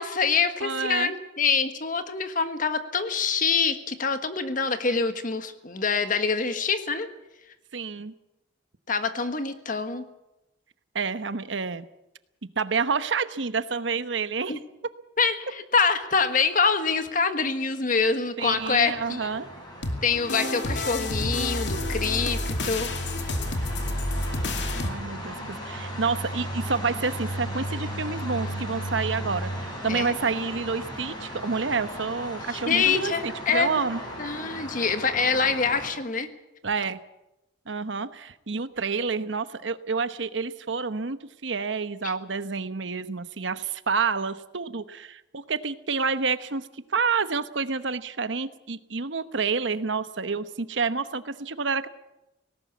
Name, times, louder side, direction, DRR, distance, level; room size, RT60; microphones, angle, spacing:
voice 1, 0.0-7.1 8.9-10.0 14.5-14.6 15.2-19.3 20.0-22.4 22.6-22.9 29.9-30.1 32.7-33.8 34.2-36.3 42.0-42.1, left 5 dB, 45° left, 9 dB, 1.5 m, -25 dB
voice 2, 0.6-1.1 7.7-8.1 10.9-11.8 12.6-14.6 18.4-19.5 24.7-34.0 36.6-37.0 37.7-41.2 41.4-51.9, right 5 dB, 75° right, 12 dB, 1.0 m, -29 dB
sound 1, 18.4-35.9, equal, 20° left, 6.6 m, -36 dB
sound 2, 19.8-24.9, left 1 dB, 65° left, 2.5 m, -29 dB
18.5 x 18.0 x 8.4 m, 0.95 s
head